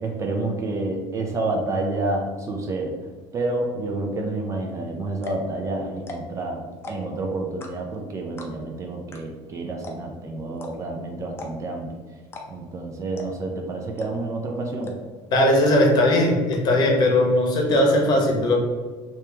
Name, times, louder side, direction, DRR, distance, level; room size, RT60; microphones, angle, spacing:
voice 1, 0.0-2.9 3.3-11.9 12.5-14.9, right 2 dB, 30° right, 2 dB, 0.5 m, -29 dB
sound 1, 4.7-4.8 5.1-5.5 6.0-6.4 6.7-7.2 7.6-8.0 8.4-8.7 9.1-9.2 9.5-9.6 9.8-10.2 10.6-10.7 11.3-11.8 12.2-12.7 13.2-13.5 14.0-14.4 14.8-15.2 15.7-15.8 16.1-16.2 16.5-16.9 17.2-17.8, left 2 dB, 25° left, 0.5 m, -38 dB
voice 2, 15.3-18.6, left 1 dB, 40° left, 0 dB, 0.9 m, -19 dB
2.9 x 2.9 x 3.4 m, 1.4 s
cardioid pair, 130°, 10 cm